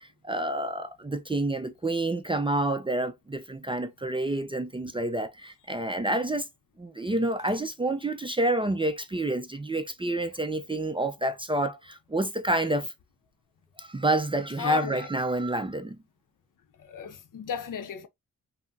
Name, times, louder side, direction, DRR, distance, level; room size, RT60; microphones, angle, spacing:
voice 1, 0.0-6.5 6.8-12.9 13.8-16.0, right 2 dB, 15° right, 0.4 m, -28 dB
voice 2, 14.6-15.1 16.8-18.1, left 9 dB, 65° left, 0.7 m, -33 dB
3.5 x 2.0 x 2.6 m
cardioid pair, 60°, 35 cm